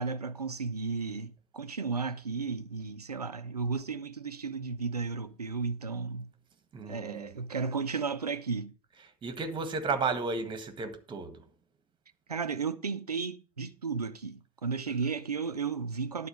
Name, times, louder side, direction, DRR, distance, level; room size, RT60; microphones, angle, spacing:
voice 1, 0.0-6.3 6.8-8.7 12.3-16.3, right 5 dB, 90° right, 0.7 m, -34 dB
voice 2, 6.7-7.3 9.2-11.5, right 4 dB, 25° right, 1.7 m, -33 dB
11.0 x 4.2 x 7.0 m
figure-of-eight pair, 80°, 20 cm